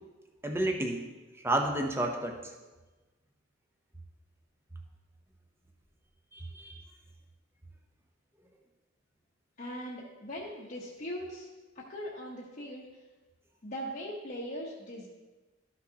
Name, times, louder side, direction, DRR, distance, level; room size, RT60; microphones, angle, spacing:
voice 1, 0.4-1.1 1.4-2.4 6.3-6.8, right 1 dB, 10° right, 3 dB, 0.7 m, -30 dB
voice 2, 9.6-11.5 11.7-12.9 13.6-15.1, equal, 45° left, -5 dB, 1.0 m, -40 dB
12.5 x 6.0 x 2.9 m, 1.2 s
head